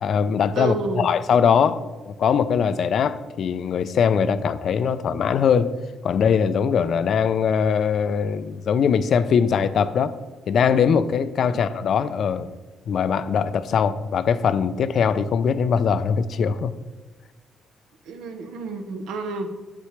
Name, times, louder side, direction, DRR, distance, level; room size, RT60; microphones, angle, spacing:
voice 1, 0.0-5.7 6.0-10.1 10.5-12.5 12.9-16.7, left 7 dB, 60° left, 14 dB, 0.4 m, -21 dB
voice 2, 0.6-1.1 11.5-11.6 18.1-19.5, right 3 dB, 85° right, 6 dB, 0.8 m, -30 dB
8.2 x 6.9 x 3.2 m, 1.3 s
cardioid pair, 90°, 0 cm